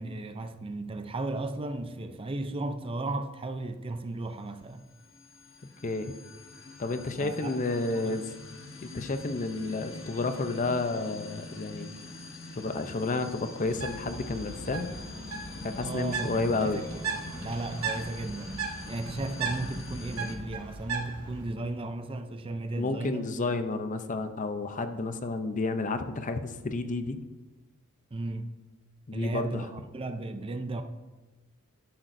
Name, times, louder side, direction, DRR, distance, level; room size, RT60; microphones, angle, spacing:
voice 1, 0.0-4.9 7.2-7.6 8.0-8.2 15.8-16.8 17.1-23.2 28.1-28.5 29.1-30.8, right 2 dB, 25° right, 0.5 m, -35 dB
sound 1, 4.7-20.4, left 1 dB, 60° left, 1.1 m, -44 dB
voice 2, 5.8-6.1 6.8-8.3 8.8-11.9 12.5-14.9 15.6-16.8 22.8-27.2 29.1-29.7, left 3 dB, 35° left, 0.6 m, -31 dB
Bird, 13.6-21.4, right 4 dB, 90° right, 2.0 m, -37 dB
11.5 x 10.0 x 2.6 m
head